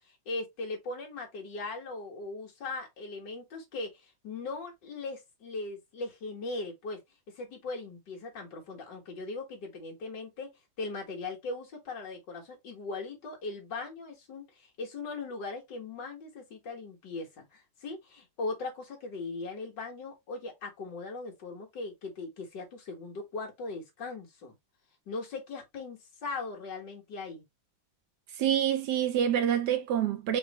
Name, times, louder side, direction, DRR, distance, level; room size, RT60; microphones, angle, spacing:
voice 1, 0.1-7.0 7.4-10.5 10.8-24.6 25.1-27.4, left 3 dB, 60° left, 2.2 m, -39 dB
voice 2, 28.4-30.4, right 10 dB, 70° right, 1.0 m, -27 dB
4.7 x 3.2 x 3.0 m
omnidirectional pair, 2.2 m